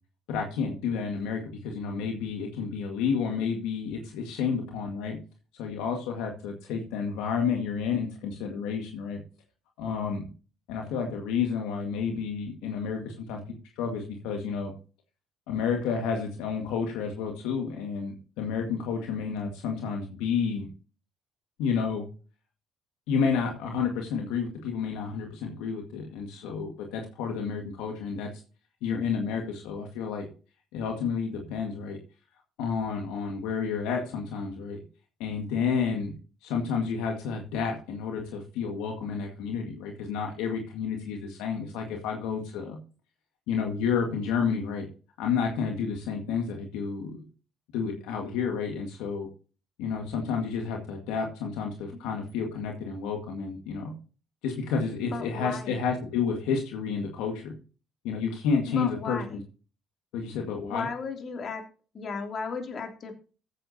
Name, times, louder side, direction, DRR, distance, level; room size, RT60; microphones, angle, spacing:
voice 1, 0.3-5.2 5.5-9.2 9.8-10.3 10.7-13.4 13.8-14.7 15.5-20.7 21.6-22.1 23.1-28.3 28.8-30.3 30.7-32.0 32.6-34.8 35.2-36.1 36.4-42.8 43.5-44.9 45.2-47.2 47.7-49.3 49.8-54.0 54.4-57.6 58.0-59.4 60.1-60.9, left 6 dB, 80° left, 2 dB, 1.9 m, -30 dB
voice 2, 55.1-55.8 58.7-59.4 60.7-61.6 61.9-63.2, left 4 dB, 50° left, 4 dB, 3.0 m, -35 dB
14.5 x 8.7 x 2.8 m, 0.36 s
supercardioid pair, 65°, 0 cm